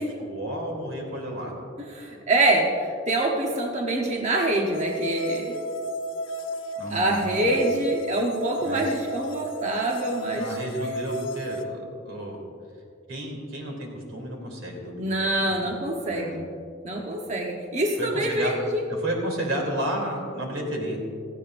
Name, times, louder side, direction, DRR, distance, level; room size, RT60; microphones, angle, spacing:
voice 1, 0.2-1.5 6.8-7.6 8.6-8.9 10.3-12.4 13.1-15.1 15.4-15.6 16.1-16.4 18.0-18.6 18.9-21.0, right 1 dB, 85° right, 0 dB, 3.0 m, -32 dB
voice 2, 1.8-5.5 6.9-10.5 15.0-16.5 16.8-18.8, right 1 dB, 35° right, 0 dB, 1.0 m, -25 dB
sound 1, 4.7-11.6, equal, 80° left, 0.9 m, -33 dB
17.0 x 15.0 x 2.6 m, 2.4 s
head